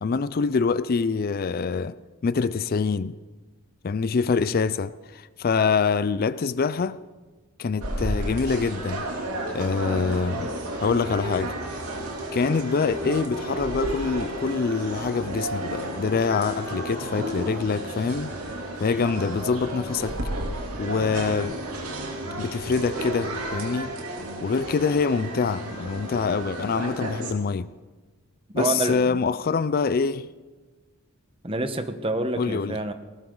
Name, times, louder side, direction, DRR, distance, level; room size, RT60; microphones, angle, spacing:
voice 1, 0.0-1.9 2.2-3.2 3.8-7.0 7.6-9.1 9.5-10.5 10.8-11.5 12.3-18.3 18.8-20.2 20.8-21.5 22.4-23.9 24.4-27.7 28.5-30.3 32.4-32.8, left 5 dB, 40° left, 0.4 m, -25 dB
sound 1, 7.8-27.3, right 1 dB, 85° right, 3.0 m, -32 dB
voice 2, 28.5-29.2 31.4-32.9, right 2 dB, 25° right, 1.1 m, -27 dB
18.5 x 18.5 x 3.9 m
head